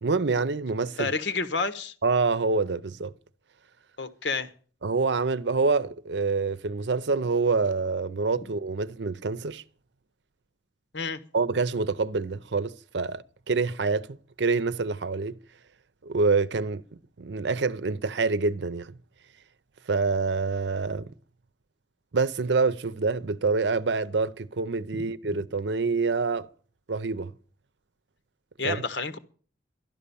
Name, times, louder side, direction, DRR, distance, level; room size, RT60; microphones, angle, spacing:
voice 1, 0.0-1.1 2.0-3.1 4.8-9.6 11.3-15.4 16.0-16.8 17.2-19.0 19.9-21.1 22.1-26.5 26.9-27.3 28.6-28.8, right 4 dB, 80° right, 0.7 m, -26 dB
voice 2, 1.0-1.9 4.0-4.5 10.9-11.2 24.9-25.1 28.6-29.2, left 4 dB, 80° left, 1.2 m, -29 dB
12.5 x 11.5 x 7.0 m
head